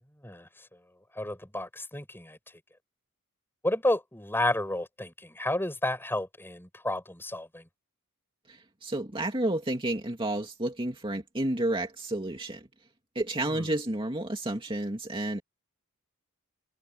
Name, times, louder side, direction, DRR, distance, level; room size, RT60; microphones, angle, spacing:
voice 1, 0.2-0.7 1.1-2.6 3.6-7.7 13.4-13.7, left 1 dB, 10° left, 5.5 m, -31 dB
voice 2, 8.5-12.7 13.1-15.4, right 1 dB, 25° right, 2.4 m, -31 dB
head